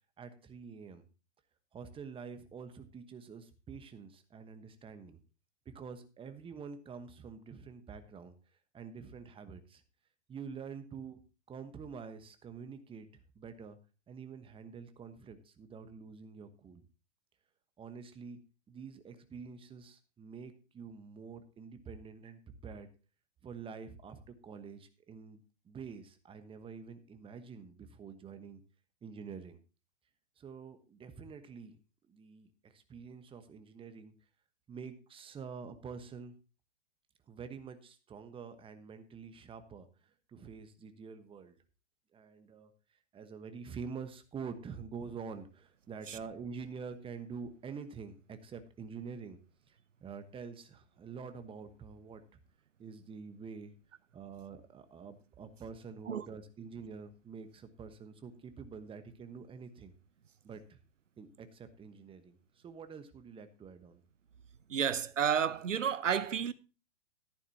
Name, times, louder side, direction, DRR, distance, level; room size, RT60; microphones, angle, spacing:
voice 1, 0.2-1.0 1.7-5.2 5.6-8.3 8.7-9.8 10.3-11.2 11.5-13.1 13.3-13.8 14.1-16.8 17.8-18.4 18.7-22.9 23.4-28.6 29.0-29.6 30.4-31.8 32.1-34.1 34.7-36.3 37.3-39.9 40.3-41.6 42.1-42.7 43.1-49.4 49.7-52.2 52.8-53.7 54.1-59.9 60.4-60.8 61.2-64.0, right 5 dB, 15° right, 1.2 m, -47 dB
voice 2, 64.7-66.5, right 8 dB, 90° right, 0.8 m, -31 dB
13.0 x 11.0 x 2.8 m
hypercardioid pair, 115°, 36 cm